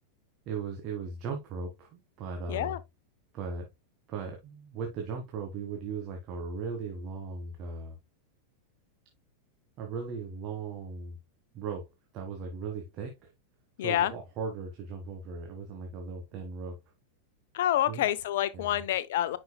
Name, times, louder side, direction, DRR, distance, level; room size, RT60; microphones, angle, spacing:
voice 1, 0.5-2.8 3.3-3.7 4.1-8.0 9.8-11.2 11.5-11.9 12.1-13.3 13.8-16.8 17.9-18.0 18.5-18.8, right 5 dB, 35° right, 1.5 m, -37 dB
voice 2, 13.8-14.1 17.5-19.4, left 12 dB, 55° left, 0.7 m, -27 dB
9.6 x 5.3 x 2.2 m
figure-of-eight pair, 90°, 0 cm